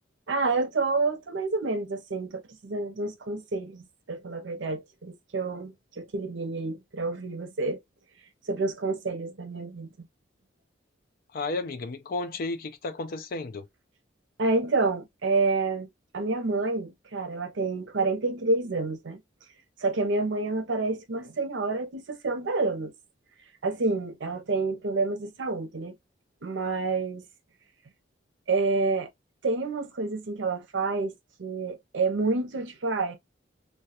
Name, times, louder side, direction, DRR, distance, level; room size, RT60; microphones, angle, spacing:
voice 1, 0.3-7.8 8.5-9.9 14.4-15.9 16.1-19.2 19.8-22.9 23.6-25.9 26.4-27.2 28.5-29.1 29.4-31.1 31.4-33.2, right 3 dB, 75° right, 0.6 m, -28 dB
voice 2, 11.3-13.7, left 3 dB, 50° left, 0.4 m, -33 dB
2.2 x 2.2 x 2.7 m
head